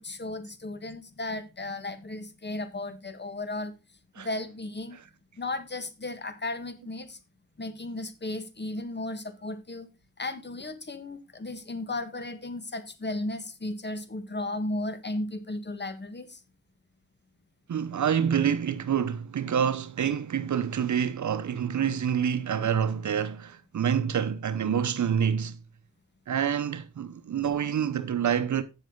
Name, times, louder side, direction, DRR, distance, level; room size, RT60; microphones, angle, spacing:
voice 1, 0.0-3.7 4.1-5.0 5.3-7.2 7.6-9.9 10.2-16.4, left 2 dB, 35° left, 1.5 m, -35 dB
voice 2, 17.7-25.6 26.3-28.6, right 8 dB, 65° right, 0.8 m, -27 dB
8.8 x 7.4 x 3.7 m
cardioid pair, 50°, 32 cm